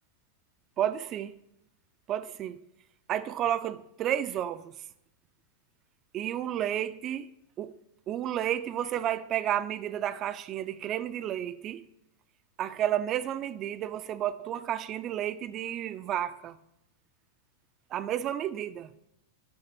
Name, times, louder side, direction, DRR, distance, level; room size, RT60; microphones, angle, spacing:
voice 1, 0.8-1.4 2.1-2.6 3.1-4.7 6.1-7.3 7.6-7.7 8.1-11.9 12.6-16.6 17.9-18.9, right 11 dB, 30° right, 0.3 m, -31 dB
6.9 x 3.2 x 5.6 m
figure-of-eight pair, 90°, 0 cm